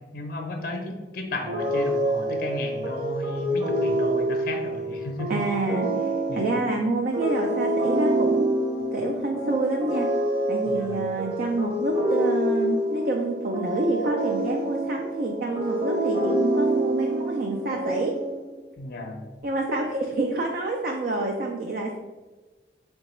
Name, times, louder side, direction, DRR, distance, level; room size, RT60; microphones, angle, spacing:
voice 1, 0.1-5.4 6.3-6.5 8.8-9.0 10.6-11.1 18.8-19.2, left 2 dB, 55° left, 3 dB, 0.5 m, -34 dB
sound 1, 1.5-18.6, right 1 dB, 30° right, 0.7 m, -27 dB
voice 2, 5.3-10.1 10.5-18.1 19.4-22.0, right 2 dB, 55° right, 1 dB, 0.4 m, -28 dB
3.8 x 2.2 x 4.1 m, 1.2 s
head